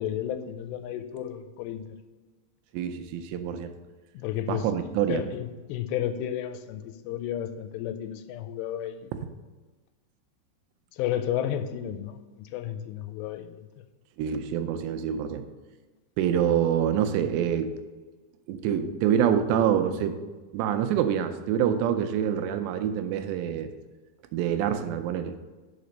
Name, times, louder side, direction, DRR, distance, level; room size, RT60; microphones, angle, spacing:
voice 1, 0.0-1.8 4.1-9.1 10.9-13.7, left 10 dB, 85° left, 9 dB, 2.7 m, -32 dB
voice 2, 2.7-3.7 4.5-5.2 14.2-15.4 16.2-17.7 18.5-20.2 20.5-23.7 24.3-25.4, right 9 dB, 85° right, 8 dB, 2.7 m, -26 dB
5.8 x 5.1 x 6.4 m, 1.3 s
omnidirectional pair, 4.9 m